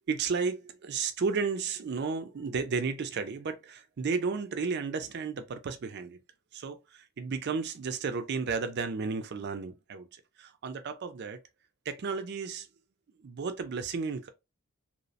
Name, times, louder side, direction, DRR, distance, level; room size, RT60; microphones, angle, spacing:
voice 1, 0.1-6.2 6.5-11.4 11.9-12.7 13.2-14.3, right 5 dB, 50° right, 0.4 m, -33 dB
2.8 x 2.0 x 2.7 m
head